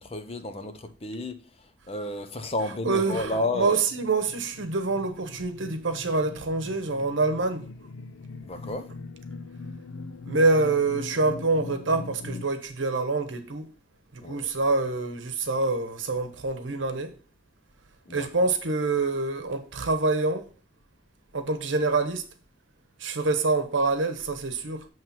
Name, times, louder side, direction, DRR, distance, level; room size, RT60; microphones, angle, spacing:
voice 1, 0.0-3.8 8.4-8.9 14.2-14.5 18.1-18.3, left 2 dB, 30° left, 0.6 m, -32 dB
voice 2, 2.8-7.9 10.2-13.7 14.1-17.1 18.1-20.5 21.3-22.3 23.0-24.9, right 3 dB, 85° right, 0.9 m, -26 dB
sound 1, 3.3-12.4, left 3 dB, 90° left, 0.4 m, -42 dB
7.3 x 3.1 x 5.8 m
head